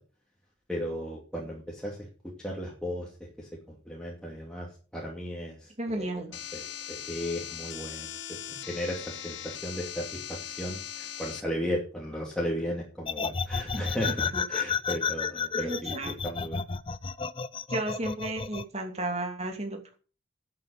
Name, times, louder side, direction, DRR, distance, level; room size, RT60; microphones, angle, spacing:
voice 1, 0.7-6.1 6.5-8.4 8.7-16.6, equal, 5° left, -3 dB, 2.4 m, -35 dB
voice 2, 5.8-6.3 13.7-13.8 14.3-14.4 15.5-16.2 17.7-20.0, right 1 dB, 30° right, 3 dB, 2.6 m, -33 dB
sound 1, 6.3-11.4, left 10 dB, 65° left, 1.1 m, -40 dB
sound 2, 13.1-18.6, left 6 dB, 25° left, 0.5 m, -31 dB
11.0 x 7.7 x 6.9 m, 0.38 s
head